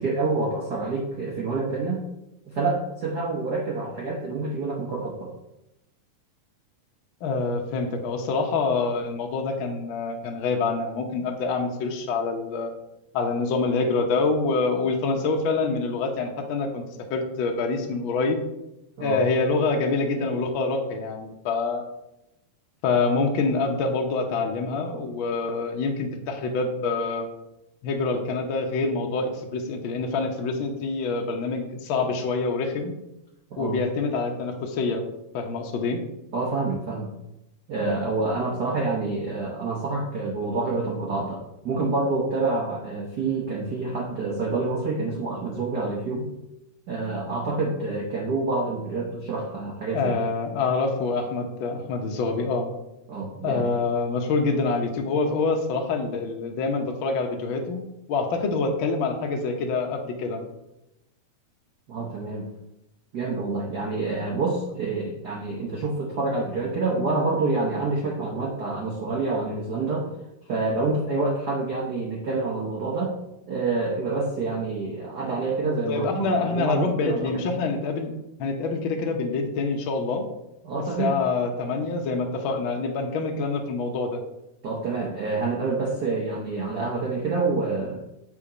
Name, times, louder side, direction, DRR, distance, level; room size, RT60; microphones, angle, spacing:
voice 1, 0.0-2.0 2.5-5.3 19.0-19.2 33.5-33.8 36.3-37.1 37.7-46.3 46.9-50.1 53.1-53.7 61.9-62.5 63.1-70.1 70.5-73.1 73.4-77.4 80.6-81.1 84.6-88.0, right 3 dB, 85° right, -3 dB, 0.8 m, -27 dB
voice 2, 7.2-12.7 13.1-16.8 17.1-18.4 19.0-21.8 22.8-27.3 27.8-32.9 33.6-35.0 35.3-36.0 49.9-52.7 53.4-57.8 58.1-60.4 75.9-78.1 78.4-80.2 81.0-84.2, left 3 dB, 75° left, 2 dB, 1.1 m, -26 dB
7.3 x 4.3 x 4.9 m, 0.90 s
omnidirectional pair, 3.3 m